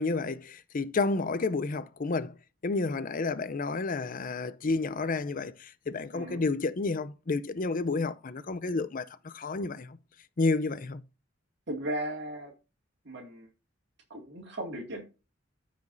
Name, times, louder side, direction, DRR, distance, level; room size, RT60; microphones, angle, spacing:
voice 1, 0.0-2.3 2.6-10.0 10.4-11.0, left 3 dB, 45° left, 0.6 m, -30 dB
voice 2, 6.1-6.5 11.7-12.5 13.0-13.5 14.1-15.0, right 1 dB, 65° right, 2.3 m, -36 dB
15.0 x 5.1 x 2.7 m
head